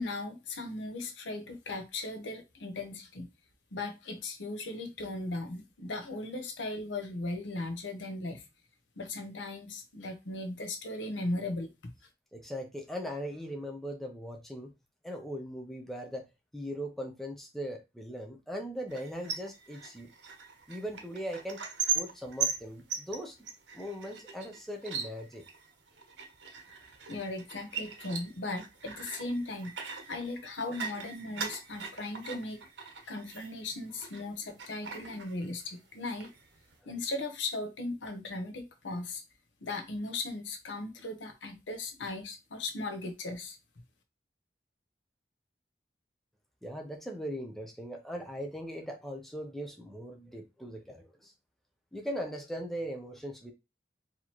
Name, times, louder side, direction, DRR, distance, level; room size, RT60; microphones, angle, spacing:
voice 1, 0.0-3.3 3.7-8.4 9.0-11.7 27.0-32.6 33.0-36.3 36.9-39.2 39.6-43.6, left 2 dB, 85° left, 0.8 m, -37 dB
voice 2, 12.3-14.7 15.0-16.2 16.5-20.1 20.7-21.6 21.9-23.4 23.7-25.4 46.6-51.3 51.9-53.5, equal, ahead, 0.6 m, -39 dB
sound 1, 18.9-34.3 34.6-35.8 36.1-36.7, right 6 dB, 75° right, 0.9 m, -39 dB
4.4 x 2.8 x 3.0 m
head